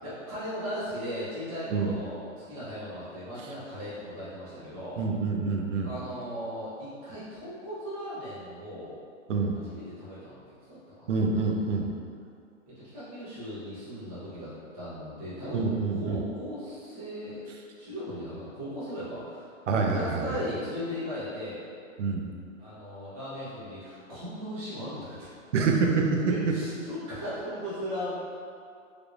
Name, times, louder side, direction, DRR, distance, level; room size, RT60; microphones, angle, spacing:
voice 1, 0.0-5.0 5.8-8.9 9.6-11.1 12.7-17.4 17.8-21.6 22.6-25.2 26.3-28.1, equal, 30° right, -13 dB, 1.1 m, -37 dB
voice 2, 5.0-5.9 9.3-9.6 11.1-11.9 15.5-16.2 19.7-20.2 22.0-22.3 25.5-26.2, right 4 dB, 65° right, 1 dB, 0.6 m, -26 dB
3.3 x 3.2 x 2.5 m, 2.4 s
hypercardioid pair, 175°, 39 cm